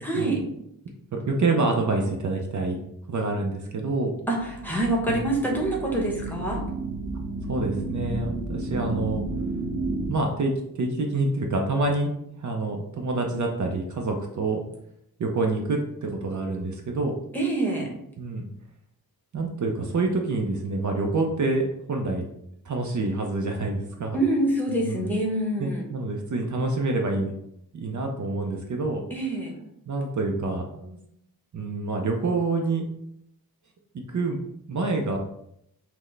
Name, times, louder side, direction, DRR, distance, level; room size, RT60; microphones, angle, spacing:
voice 1, 0.0-0.4 4.3-6.6 17.3-17.9 24.1-25.8 29.1-29.5, right 1 dB, 5° left, -3 dB, 0.9 m, -26 dB
voice 2, 1.1-2.8 3.1-4.1 5.1-5.2 7.5-9.2 10.0-12.1 12.4-14.6 15.2-17.1 18.2-18.5 19.3-22.2 22.7-24.2 24.8-25.1 25.6-27.3 27.7-29.0 29.9-31.0 31.5-32.9 33.9-34.4 34.7-35.2, right 3 dB, 50° right, 2 dB, 0.6 m, -27 dB
sound 1, 3.5-10.1, right 2 dB, 15° right, 1.0 m, -32 dB
5.9 x 2.1 x 3.2 m, 0.76 s
wide cardioid pair, 155°, 37 cm